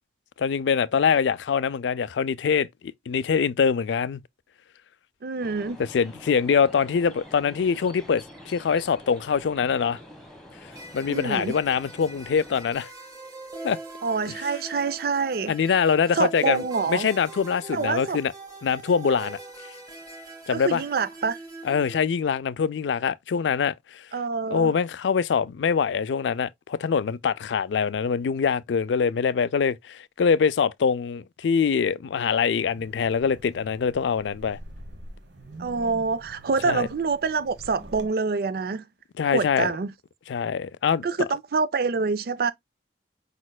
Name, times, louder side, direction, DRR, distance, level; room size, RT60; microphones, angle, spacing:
voice 1, 0.4-2.7 3.1-4.2 5.9-10.0 10.9-12.9 13.6-13.8 14.3-14.4 15.5-16.6 16.9-18.3 18.6-19.4 20.5-20.8 21.6-24.0 24.5-34.6 36.6-36.9 39.2-39.7 40.3-41.0, left 6 dB, 85° left, 0.4 m, -24 dB
voice 2, 5.2-5.8 11.1-11.6 14.0-15.8 16.1-17.1 17.7-18.2 20.5-21.4 24.1-24.7 35.6-38.8 39.3-39.9 41.0-42.5, right 4 dB, 55° right, 0.4 m, -26 dB
sound 1, 5.4-12.7, equal, 5° left, 1.2 m, -47 dB
sound 2, 10.7-22.0, right 3 dB, 20° right, 1.8 m, -42 dB
Wind, 32.6-38.1, right 1 dB, 75° right, 1.1 m, -45 dB
5.2 x 4.2 x 2.2 m
head